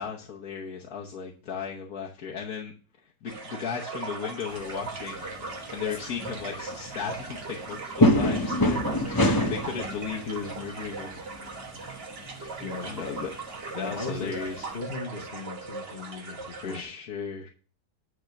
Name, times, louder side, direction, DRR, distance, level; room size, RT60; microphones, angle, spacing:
voice 1, 0.0-2.7 3.0-5.2 5.7-11.2 12.6-13.3 13.8-14.7 16.6-17.5, left 6 dB, 60° left, -1 dB, 1.4 m, -36 dB
sound 1, 3.3-16.8, right 3 dB, 40° right, 1.3 m, -39 dB
sound 2, 4.5-14.8, left 1 dB, 25° left, 0.4 m, -29 dB
voice 2, 12.6-13.0 13.7-14.4 14.7-16.8, left 4 dB, 40° left, 4 dB, 1.0 m, -37 dB
9.8 x 3.6 x 6.5 m, 0.38 s
omnidirectional pair, 1.8 m